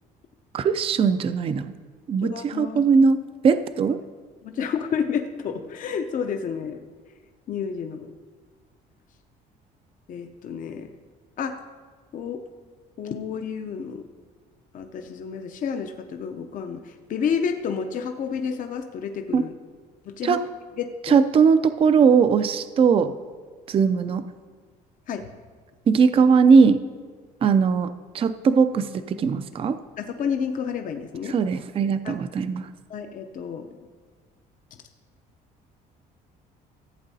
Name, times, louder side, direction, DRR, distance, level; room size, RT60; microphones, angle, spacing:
voice 1, 0.5-1.7 2.1-4.0 19.3-19.4 20.2-20.4 21.0-23.1 23.7-24.2 25.9-26.8 27.4-29.8 31.3-32.7, right 5 dB, 35° right, 11 dB, 0.4 m, -19 dB
voice 2, 2.2-2.8 4.4-6.8 7.5-8.1 10.1-10.9 11.4-11.5 12.1-12.4 13.0-14.0 14.7-19.5 20.1-20.4 20.8-21.2 25.1-25.3 30.0-31.3 32.0-32.2 32.9-33.7, left 6 dB, 50° left, 5 dB, 0.6 m, -30 dB
15.0 x 8.0 x 2.8 m, 1.5 s
cardioid pair, 110°, 17 cm